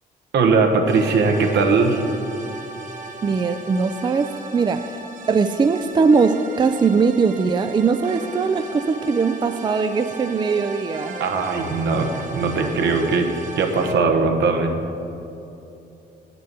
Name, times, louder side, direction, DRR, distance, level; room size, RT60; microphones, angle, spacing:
voice 1, 0.3-2.0 11.2-14.7, right 4 dB, 75° right, 3 dB, 1.2 m, -20 dB
sound 1, 0.9-13.9, right 3 dB, 45° right, 1.1 m, -37 dB
voice 2, 3.2-5.0 5.3-11.2, right 5 dB, 25° right, 10 dB, 0.4 m, -20 dB
8.0 x 6.8 x 6.9 m, 2.9 s
cardioid pair, 100°, 18 cm